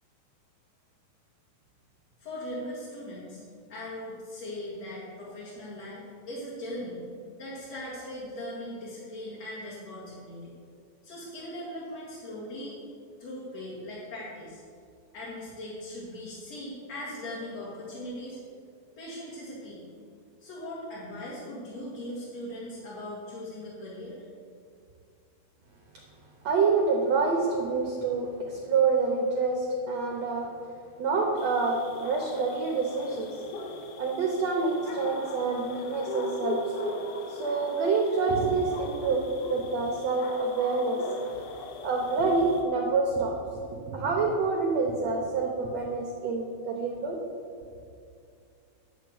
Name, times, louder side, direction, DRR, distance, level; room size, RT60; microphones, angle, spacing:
voice 1, 2.2-3.4 3.7-7.0 7.4-10.5 11.0-12.8 13.2-14.6 15.1-18.4 19.0-19.8 20.4-24.2, left 1 dB, 50° left, -7 dB, 2.5 m, -39 dB
voice 2, 26.4-30.5 31.0-33.4 34.0-36.7 37.3-39.2 39.5-41.0 41.8-43.4 43.7-47.2, right 4 dB, 75° right, 0 dB, 1.5 m, -27 dB
sound 1, 31.4-42.6, left 2 dB, 80° left, 2.9 m, -39 dB
11.0 x 4.6 x 7.9 m, 2.4 s
omnidirectional pair, 4.4 m